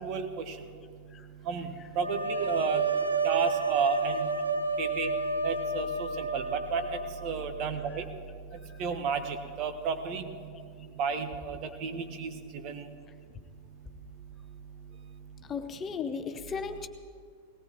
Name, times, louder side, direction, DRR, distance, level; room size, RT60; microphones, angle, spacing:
voice 1, 0.0-0.5 1.5-1.7 2.0-2.8 3.2-4.3 4.8-5.1 5.4-8.0 8.8-10.2 11.0-12.3 12.6-12.8, right 6 dB, 40° right, 8 dB, 1.2 m, -32 dB
sound 1, 2.0-7.9, right 3 dB, 85° right, 0.8 m, -31 dB
voice 2, 15.5-16.9, left 5 dB, 25° left, 7 dB, 0.8 m, -36 dB
19.5 x 18.0 x 3.0 m, 2.2 s
figure-of-eight pair, 90°, 0 cm